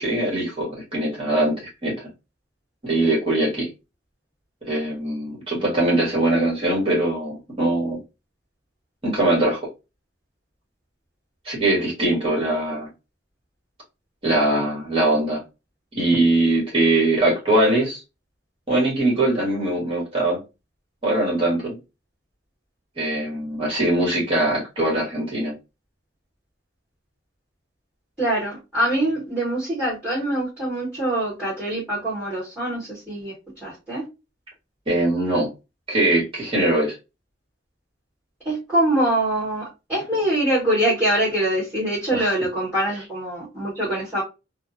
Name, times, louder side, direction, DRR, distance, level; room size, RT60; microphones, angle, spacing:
voice 1, 0.0-1.9 2.8-3.7 4.7-8.0 9.0-9.6 11.5-12.9 14.2-15.4 15.9-18.0 18.7-20.4 21.0-21.8 23.0-25.5 34.9-35.5 35.9-36.9 42.1-42.4, right 1 dB, 30° right, 1.6 m, -21 dB
voice 2, 28.2-33.3 33.6-34.1 38.5-44.2, right 1 dB, 5° right, 1.7 m, -24 dB
3.5 x 2.2 x 2.6 m
head